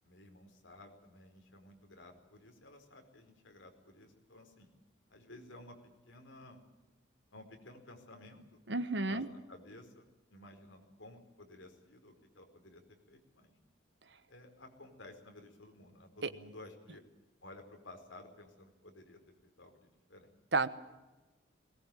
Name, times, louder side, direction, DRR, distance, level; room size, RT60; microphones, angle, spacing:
voice 1, 0.0-4.7 5.1-5.8 6.1-6.6 7.3-8.6 9.1-10.0 10.3-13.5 14.3-17.0 17.4-19.2 19.6-20.3, left 2 dB, 80° left, 4 dB, 4.8 m, -54 dB
voice 2, 8.7-9.3 16.2-16.3 20.5-20.7, right 3 dB, 65° right, 12 dB, 1.2 m, -31 dB
21.0 x 19.5 x 9.1 m, 1.1 s
head